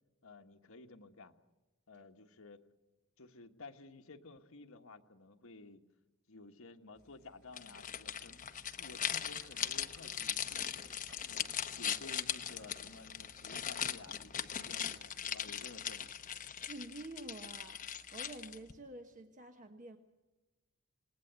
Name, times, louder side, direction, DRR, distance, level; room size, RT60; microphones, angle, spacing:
voice 1, 0.2-1.3 1.9-2.6 3.2-5.8 6.3-8.5 8.8-10.7 11.2-16.1, left 3 dB, 70° left, 4 dB, 1.5 m, -54 dB
sound 1, 7.2-16.5, right 1 dB, 50° right, 5.2 m, -63 dB
sound 2, 7.5-18.7, left 9 dB, 40° left, 1.1 m, -40 dB
voice 2, 16.6-20.0, right 2 dB, 35° right, 6 dB, 1.2 m, -49 dB
27.5 x 19.0 x 8.1 m, 1.1 s
head